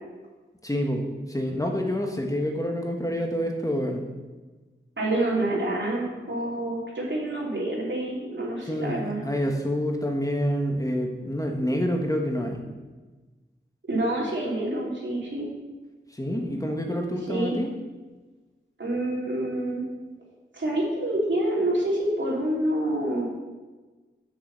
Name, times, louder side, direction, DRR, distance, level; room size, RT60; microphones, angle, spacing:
voice 1, 0.6-4.0 8.7-12.6 16.1-17.7, equal, 15° left, 1 dB, 1.4 m, -27 dB
voice 2, 5.0-9.2 13.9-15.5 17.3-17.6 18.8-19.8 20.5-23.2, right 1 dB, 65° right, -4 dB, 3.0 m, -27 dB
6.6 x 5.6 x 7.0 m, 1.2 s
cardioid pair, 45°, 21 cm